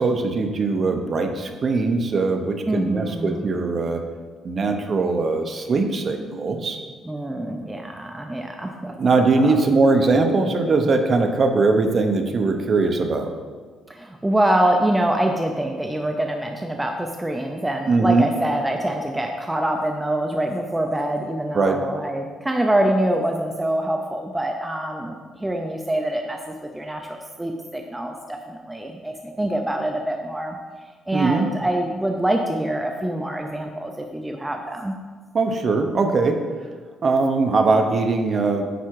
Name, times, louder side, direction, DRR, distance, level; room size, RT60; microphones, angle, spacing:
voice 1, 0.0-4.0 4.4-6.8 9.0-13.3 17.9-18.3 21.5-21.8 31.1-31.5 35.3-36.4 37.0-38.6, right 3 dB, 35° right, 5 dB, 0.8 m, -20 dB
voice 2, 2.7-3.4 7.0-8.9 9.4-9.6 13.9-30.6 31.1-34.9, right 1 dB, 10° right, 3 dB, 0.5 m, -25 dB
9.2 x 4.8 x 4.7 m, 1.5 s
cardioid pair, 145°, 0 cm